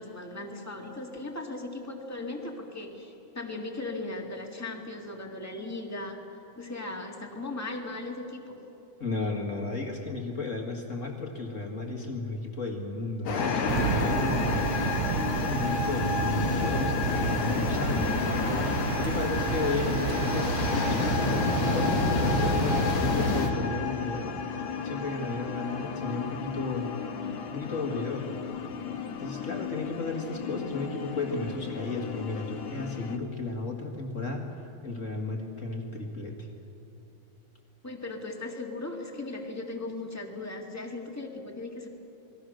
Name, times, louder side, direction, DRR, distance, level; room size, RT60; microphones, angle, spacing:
voice 1, 0.0-6.2 6.5-8.5 37.8-41.9, left 2 dB, 5° left, 1 dB, 1.5 m, -37 dB
voice 2, 9.0-14.8 15.4-18.1 19.0-24.3 24.8-26.9 27.5-28.3 29.2-34.4 34.8-36.5, left 3 dB, 30° left, 2 dB, 1.7 m, -34 dB
sound 1, 13.3-23.5, left 3 dB, 90° left, 4.0 m, -29 dB
sound 2, 13.4-33.2, left 5 dB, 75° left, 2.5 m, -34 dB
sound 3, 13.7-23.5, right 10 dB, 80° right, 1.3 m, -32 dB
29.0 x 21.0 x 6.4 m, 2.9 s
omnidirectional pair, 3.6 m